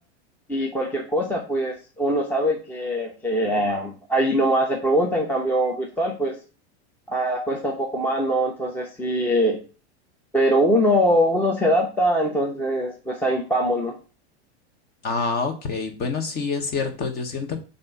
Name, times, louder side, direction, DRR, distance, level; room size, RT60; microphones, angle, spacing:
voice 1, 0.5-6.3 7.1-9.6 10.3-13.9, equal, 5° left, 0 dB, 0.8 m, -22 dB
voice 2, 15.0-17.6, left 4 dB, 30° left, 6 dB, 1.2 m, -27 dB
7.3 x 2.8 x 5.9 m, 0.35 s
supercardioid pair, 150°, 34 cm